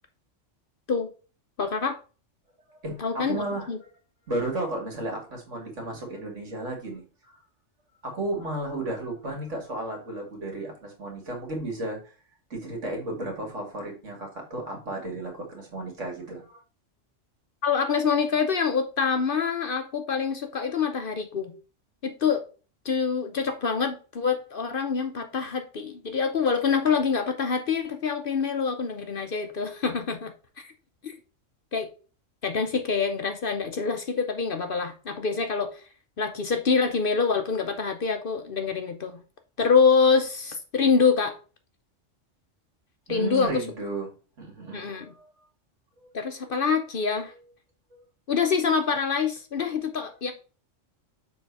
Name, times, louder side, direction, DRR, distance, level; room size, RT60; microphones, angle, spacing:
voice 1, 1.6-2.0 3.0-3.8 17.6-21.5 22.0-22.4 22.8-30.7 31.0-31.1 31.7-31.9 32.4-35.8 36.2-39.2 39.6-41.4 43.1-43.6 44.7-45.1 46.1-47.3 48.3-50.3, left 5 dB, 50° left, 6 dB, 0.8 m, -25 dB
voice 2, 2.7-3.9 4.3-7.4 8.0-12.1 12.5-16.6 43.1-44.1 44.4-45.4, right 2 dB, 70° right, 2 dB, 2.3 m, -34 dB
6.6 x 3.4 x 4.6 m, 0.36 s
omnidirectional pair, 1.3 m